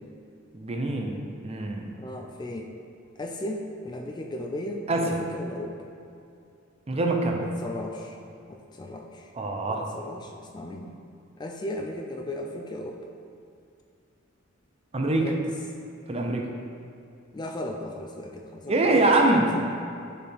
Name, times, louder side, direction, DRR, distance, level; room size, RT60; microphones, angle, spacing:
voice 1, 0.5-1.1 1.4-1.9 4.9-5.2 6.9-7.4 9.4-9.9 14.9-15.3 16.1-16.5 18.7-19.5, right 2 dB, 30° right, 2 dB, 0.6 m, -24 dB
voice 2, 2.0-2.7 3.2-5.8 7.4-8.2 8.5-9.3 9.7-11.0 11.4-13.0 15.2-15.4 17.3-19.7, left 1 dB, 20° left, 2 dB, 0.4 m, -36 dB
9.7 x 4.4 x 3.4 m, 2.5 s
head